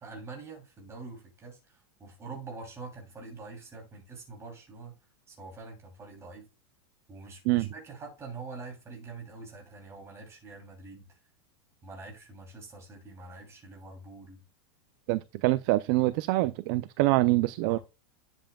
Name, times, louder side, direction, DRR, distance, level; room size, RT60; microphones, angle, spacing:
voice 1, 0.0-1.6 2.0-4.9 5.3-6.4 7.1-11.1 11.8-14.4 17.6-17.8, right 3 dB, 20° right, 2.9 m, -45 dB
voice 2, 15.1-17.8, right 18 dB, 45° right, 0.4 m, -25 dB
10.5 x 7.3 x 2.2 m
supercardioid pair, 155°, 15 cm